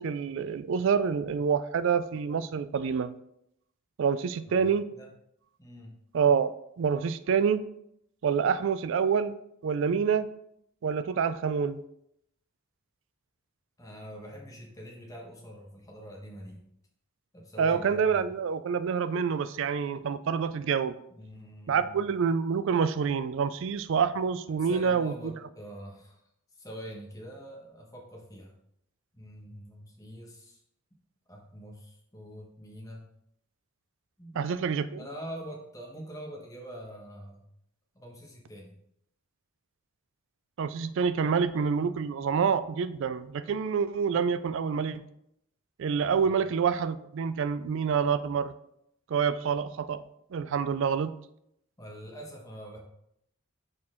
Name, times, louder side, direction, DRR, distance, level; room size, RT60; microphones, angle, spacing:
voice 1, 0.0-3.1 4.0-4.8 6.1-6.5 6.8-7.6 8.2-9.3 9.6-10.3 10.8-11.8 17.6-21.0 21.7-25.1 34.4-35.0 40.6-45.0 45.8-48.5 49.1-50.0 50.3-51.1, right 6 dB, 55° right, 14 dB, 0.3 m, -27 dB
voice 2, 4.5-5.1 5.6-6.0 13.8-16.6 17.3-18.3 21.1-22.0 24.5-26.2 26.5-28.5 29.1-30.6 31.3-33.1 34.2-34.4 35.0-37.4 37.9-38.8 46.2-46.4 51.8-52.8, equal, 15° left, -1 dB, 1.1 m, -44 dB
6.3 x 4.3 x 3.7 m, 0.77 s
head